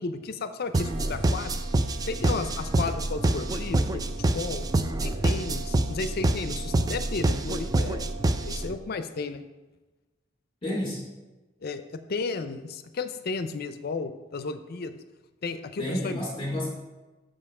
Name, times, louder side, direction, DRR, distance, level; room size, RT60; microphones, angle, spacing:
voice 1, 0.0-1.5 2.1-4.1 4.3-4.7 5.0-8.0 8.4-9.4 11.6-11.8 12.1-15.0 15.4-16.2, left 4 dB, 55° left, 10 dB, 0.5 m, -33 dB
sound 1, 0.7-8.8, right 2 dB, 20° right, 0.4 m, -27 dB
sound 2, 0.7-8.7, right 6 dB, 85° right, 0.6 m, -46 dB
sound 3, 1.0-6.0, equal, 10° left, 2.8 m, -50 dB
voice 2, 10.6-11.1 15.8-16.7, left 1 dB, 30° left, -3 dB, 2.7 m, -30 dB
7.0 x 5.4 x 4.8 m, 1.1 s
head